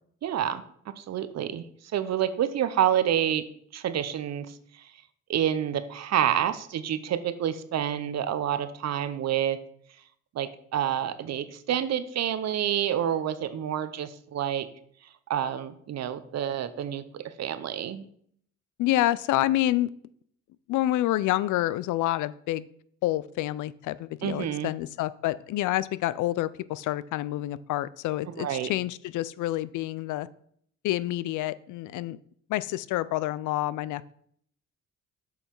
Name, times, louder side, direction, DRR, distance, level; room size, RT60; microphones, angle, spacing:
voice 1, 0.2-0.6 1.0-1.6 1.9-3.4 3.7-4.5 5.3-9.6 10.3-14.7 15.3-18.0 24.2-24.7 28.4-28.7, right 10 dB, 60° right, 12 dB, 0.7 m, -28 dB
voice 2, 18.8-19.9 20.7-22.7 23.0-30.3 30.8-32.2 32.5-34.1, left 15 dB, 80° left, 18 dB, 0.4 m, -28 dB
7.0 x 5.6 x 4.5 m, 0.64 s
cardioid pair, 90°, 30 cm